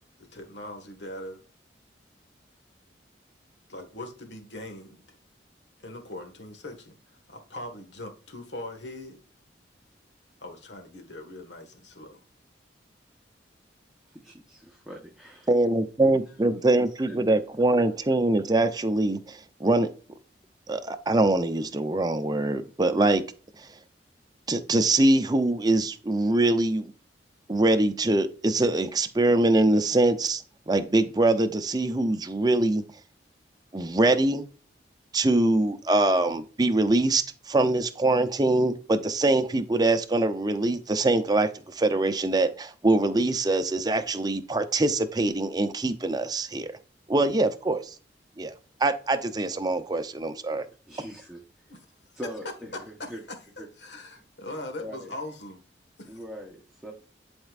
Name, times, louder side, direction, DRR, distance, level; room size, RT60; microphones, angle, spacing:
voice 1, 0.3-1.4 3.7-5.2 5.8-6.9 7.3-9.2 10.4-12.2 51.7-51.8 53.8-55.6 56.0-56.2, left 1 dB, 80° left, 1.6 m, -40 dB
voice 2, 14.0-15.5 16.0-16.6 17.1-17.2 50.9-51.7 52.2-53.2 53.6-53.7 54.1-54.2 54.8-55.1 56.0-56.9, equal, ahead, 1.0 m, -42 dB
voice 3, 15.5-19.9 20.7-23.2 23.6-23.7 24.5-26.9 27.5-32.8 33.7-34.4 35.1-46.7 47.1-47.9 48.4-48.5 48.8-50.7, right 2 dB, 20° right, 0.6 m, -23 dB
11.5 x 4.4 x 2.4 m
head